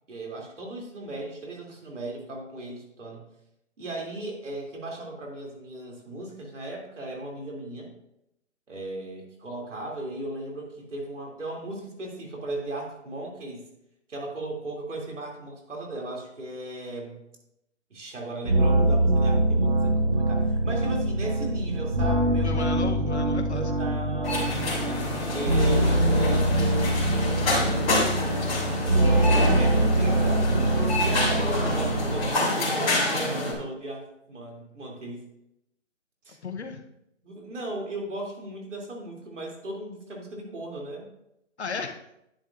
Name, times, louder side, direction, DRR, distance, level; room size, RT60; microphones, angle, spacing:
voice 1, 0.1-3.3 3.8-7.9 8.7-13.7 14.1-17.2 17.9-23.1 23.4-24.6 25.3-26.8 27.7-28.5 28.8-30.5 30.9-35.2 36.2-36.4 37.2-41.1, right 2 dB, 70° right, 0 dB, 3.0 m, -37 dB
sound 1, 18.4-32.3, right 1 dB, 35° right, 1.0 m, -24 dB
voice 2, 22.4-23.7 36.4-36.8 41.6-42.0, left 5 dB, 60° left, 6 dB, 1.0 m, -34 dB
Supermarket Checkout Line, 24.2-33.5, left 1 dB, 25° left, 3.2 m, -27 dB
10.5 x 8.7 x 2.6 m, 0.82 s
hypercardioid pair, 170°, 38 cm